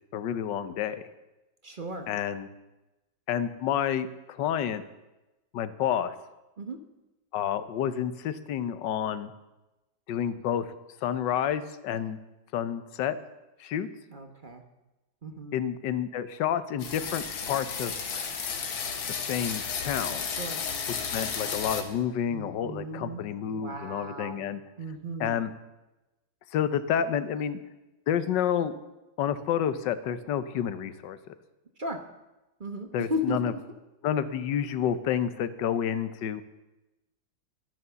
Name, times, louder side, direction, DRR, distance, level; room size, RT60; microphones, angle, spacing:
voice 1, 0.1-1.0 2.1-2.5 3.3-4.8 5.5-6.1 7.3-9.3 10.1-10.6 11.0-12.2 12.5-13.2 13.6-13.9 15.5-17.9 19.3-20.2 21.1-24.6 25.2-25.5 26.5-27.6 28.1-28.7 29.2-31.2 32.9-33.5 34.0-36.4, left 9 dB, 70° left, 13 dB, 1.5 m, -29 dB
voice 2, 1.6-2.1 6.6-6.8 14.1-14.6 15.2-15.6 20.3-20.6 22.3-23.2 23.5-24.4 24.8-25.4 31.8-32.0 32.6-33.6, equal, 30° right, 6 dB, 1.0 m, -35 dB
sound 1, 16.8-21.8, left 6 dB, 85° left, 2.2 m, -33 dB
13.0 x 11.0 x 6.9 m, 1.0 s
omnidirectional pair, 2.1 m